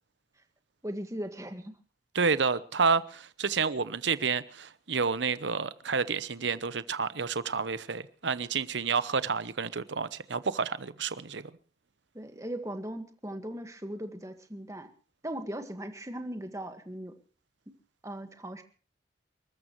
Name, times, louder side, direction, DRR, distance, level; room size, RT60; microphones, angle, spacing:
voice 1, 0.8-1.8 12.1-14.9 15.2-17.2 18.0-18.6, right 1 dB, 15° right, 1.7 m, -38 dB
voice 2, 2.1-11.4, right 5 dB, 70° right, 0.9 m, -29 dB
29.5 x 14.0 x 3.1 m
head